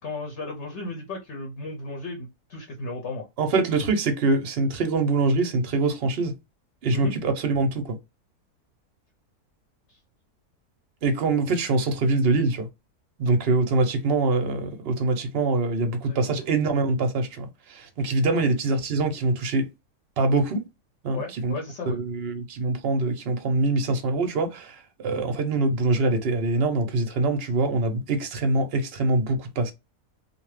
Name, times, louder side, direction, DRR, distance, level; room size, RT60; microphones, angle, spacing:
voice 1, 0.0-3.3 6.9-7.1 9.9-10.0 16.1-16.4 18.3-18.5 21.1-22.0 25.3-25.4, left 2 dB, 60° left, 0.9 m, -35 dB
voice 2, 3.4-6.3 6.8-8.0 11.0-12.7 13.2-19.7 20.2-20.6 21.0-21.5 21.9-24.8 25.0-29.7, right 3 dB, 55° right, 0.7 m, -24 dB
2.6 x 2.2 x 3.1 m
omnidirectional pair, 1.6 m